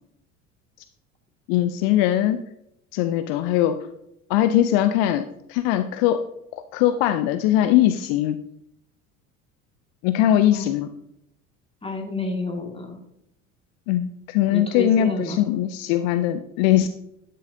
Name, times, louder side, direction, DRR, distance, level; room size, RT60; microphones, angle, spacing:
voice 1, 1.5-2.4 2.9-3.8 4.3-6.2 6.5-8.4 10.0-10.9 13.9-16.9, left 12 dB, 55° left, 10 dB, 0.6 m, -21 dB
voice 2, 11.8-13.0 14.5-15.4, left 3 dB, 15° left, 2 dB, 1.8 m, -30 dB
11.0 x 6.5 x 2.6 m, 0.80 s
figure-of-eight pair, 65°, 40 cm